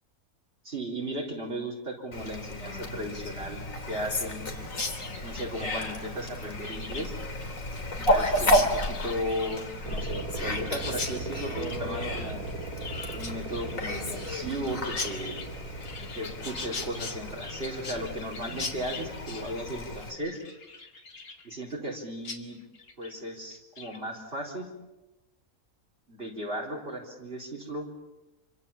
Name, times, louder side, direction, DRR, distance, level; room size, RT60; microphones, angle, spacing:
voice 1, 0.6-4.5 5.2-7.2 8.0-12.4 13.1-15.4 16.2-20.4 21.4-22.6 23.0-24.7 26.1-27.9, equal, 40° right, -1 dB, 4.6 m, -36 dB
Fowl, 2.1-20.1, left 1 dB, 65° left, 3.3 m, -32 dB
Chirp tweet, 4.7-22.0 22.2-22.4 22.7-23.1 23.5-24.0, left 4 dB, 90° left, 2.8 m, -41 dB
sound 1, 9.8-17.3, right 3 dB, 80° right, 2.1 m, -39 dB
28.0 x 25.5 x 7.3 m, 1.1 s
omnidirectional pair, 1.5 m